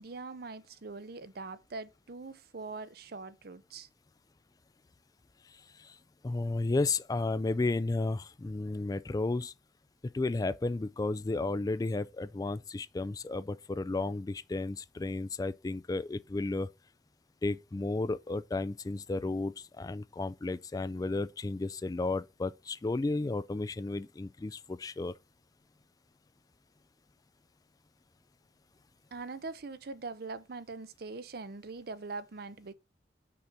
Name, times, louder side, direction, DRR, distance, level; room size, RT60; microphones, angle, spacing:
voice 1, 0.0-3.9 29.1-32.7, right 3 dB, 60° right, 0.6 m, -42 dB
voice 2, 5.5-6.0 6.2-9.5 10.1-16.7 17.4-25.1, left 2 dB, 20° left, 0.3 m, -33 dB
6.1 x 4.1 x 5.8 m
head